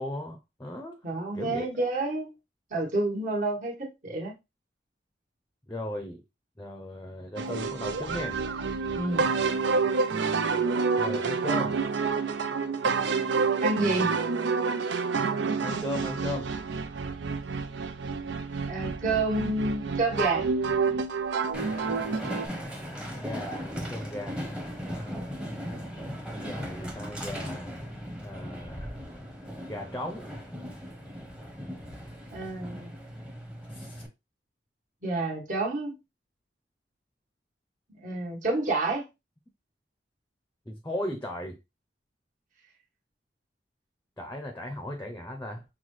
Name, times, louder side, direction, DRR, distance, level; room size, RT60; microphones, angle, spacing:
voice 1, 0.0-1.0 1.3-1.7 5.7-6.2 6.6-8.4 11.0-11.8 15.6-16.5 23.2-24.6 24.9-25.3 26.3-27.8 28.2-28.9 29.7-30.3 33.7-34.0 40.7-41.6 44.2-45.6, left 1 dB, 15° left, 0.6 m, -37 dB
voice 2, 1.0-2.3 2.7-4.3 8.9-9.3 13.6-14.2 18.7-20.5 32.3-32.9 35.0-36.0 37.9-39.0, right 2 dB, 45° right, 1.5 m, -29 dB
sound 1, 7.4-22.5, right 4 dB, 85° right, 0.5 m, -28 dB
Train, 21.5-34.1, equal, 5° right, 0.9 m, -38 dB
5.7 x 2.3 x 3.1 m
head